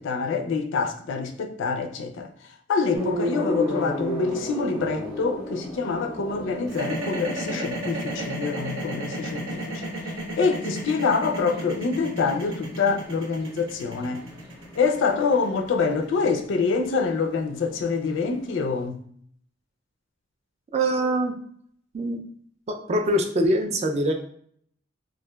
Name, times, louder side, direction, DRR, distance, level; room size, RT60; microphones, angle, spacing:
voice 1, 0.0-2.3 2.7-14.3 14.8-19.0, left 4 dB, 65° left, 0.4 m, -26 dB
sound 1, 2.9-18.8, equal, 15° right, 0.7 m, -36 dB
sound 2, 6.7-16.9, right 1 dB, 70° right, 0.7 m, -33 dB
voice 2, 20.7-21.4 21.9-22.2 22.7-24.1, right 1 dB, 35° right, 0.3 m, -23 dB
2.9 x 2.4 x 2.2 m
head